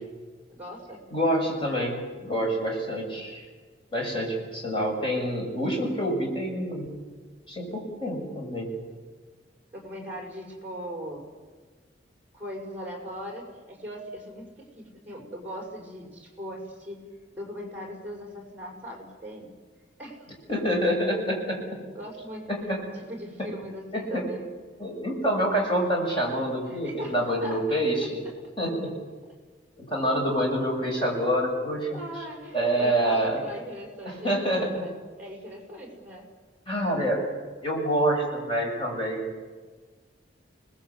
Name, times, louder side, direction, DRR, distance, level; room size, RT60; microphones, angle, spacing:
voice 1, 0.5-1.0 9.7-11.3 12.3-17.0 17.3-19.5 20.0-20.3 21.9-22.5 23.1-24.5 26.7-27.8 31.9-34.7 35.2-36.3, equal, 10° right, 0 dB, 6.0 m, -39 dB
voice 2, 1.1-3.5 3.9-6.9 7.5-8.7 20.5-21.6 22.5-22.8 23.9-24.2 24.8-28.3 28.6-28.9 29.8-32.0 32.5-33.4 34.0-34.9 36.7-37.2 37.6-39.3, equal, 25° left, -1 dB, 6.6 m, -27 dB
29.0 x 20.0 x 8.3 m, 1.4 s
head